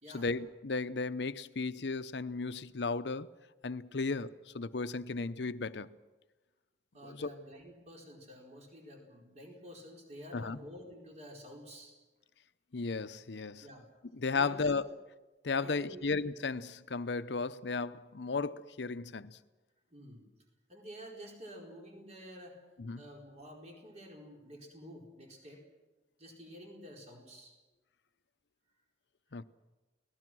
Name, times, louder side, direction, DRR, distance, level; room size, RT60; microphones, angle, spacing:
voice 1, 0.1-3.3 3.6-6.0 7.0-7.3 10.3-10.6 12.7-13.7 14.1-14.8 15.4-19.4 22.8-23.0 29.3-29.4, left 4 dB, 75° left, 0.8 m, -35 dB
voice 2, 6.9-12.0 13.6-13.8 14.3-14.9 15.5-16.0 19.9-20.3 20.7-22.6 23.0-25.6 26.2-27.6, equal, 40° right, 4.7 m, -50 dB
30.0 x 19.0 x 6.2 m
head